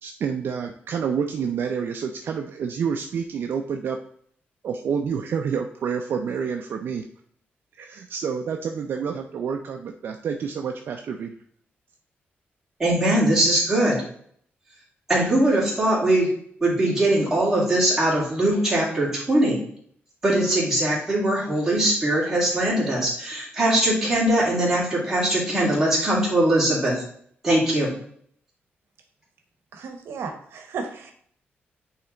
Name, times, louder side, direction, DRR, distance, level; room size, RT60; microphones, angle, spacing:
voice 1, 0.0-4.0 4.6-7.1 7.8-11.3, right 6 dB, 55° right, 4 dB, 0.5 m, -28 dB
voice 2, 12.8-14.0 15.1-16.3 16.6-19.6 20.2-27.0 27.4-27.9, right 1 dB, 10° right, -6 dB, 2.3 m, -21 dB
voice 3, 29.7-31.1, right 5 dB, 75° right, 5 dB, 0.9 m, -34 dB
8.6 x 3.3 x 3.8 m, 0.63 s
wide cardioid pair, 170°, 4 cm